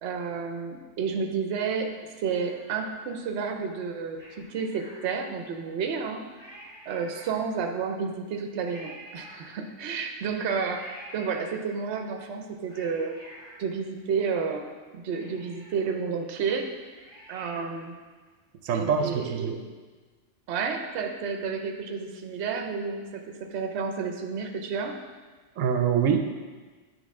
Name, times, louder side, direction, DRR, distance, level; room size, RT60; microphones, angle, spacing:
voice 1, 0.0-1.9 2.2-6.5 6.9-13.2 13.6-14.7 14.9-16.7 17.3-18.0 18.7-19.6 20.5-24.9, right 5 dB, 65° right, 4 dB, 0.9 m, -31 dB
Cat, 1.8-3.3 4.1-5.5 6.0-6.1 6.3-7.8 8.6-10.0 10.7-12.0 12.4-14.4 14.8-14.9 15.1-17.9 18.3-18.4, right 1 dB, 5° right, 1.7 m, -49 dB
voice 2, 18.6-19.6 25.6-26.3, right 7 dB, 90° right, 5 dB, 1.0 m, -25 dB
9.3 x 3.3 x 3.6 m, 1.4 s
omnidirectional pair, 1.3 m